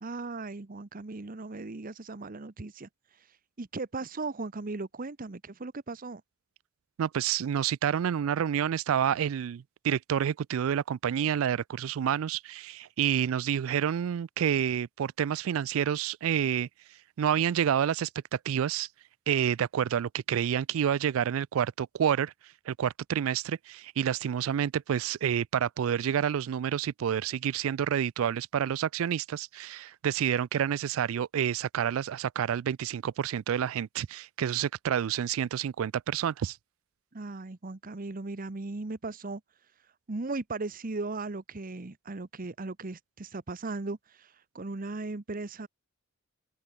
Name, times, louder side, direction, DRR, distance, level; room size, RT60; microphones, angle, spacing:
voice 1, 0.0-6.2 37.1-39.4 40.1-45.7, right 3 dB, 40° right, 0.9 m, -37 dB
voice 2, 7.0-16.7 17.2-18.9 19.3-22.3 22.7-36.6, right 9 dB, 75° right, 0.3 m, -29 dB
open air
head